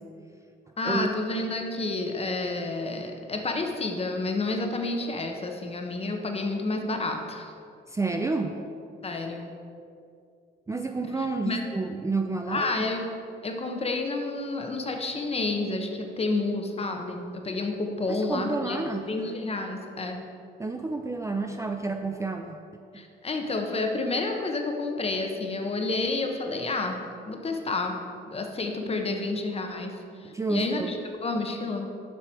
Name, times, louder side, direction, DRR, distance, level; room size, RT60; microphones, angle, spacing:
voice 1, 0.8-7.5 9.0-9.5 11.4-11.6 12.5-13.1 13.4-18.8 19.1-20.2 22.9-27.0 27.3-28.0 28.3-31.0 31.2-31.9, left 3 dB, 30° left, 3 dB, 1.0 m, -30 dB
voice 2, 7.9-8.6 10.7-12.9 18.1-19.1 20.6-22.6 30.2-30.9, right 3 dB, 15° right, 4 dB, 0.4 m, -30 dB
7.7 x 5.7 x 4.6 m, 2.4 s
cardioid pair, 90°, 20 cm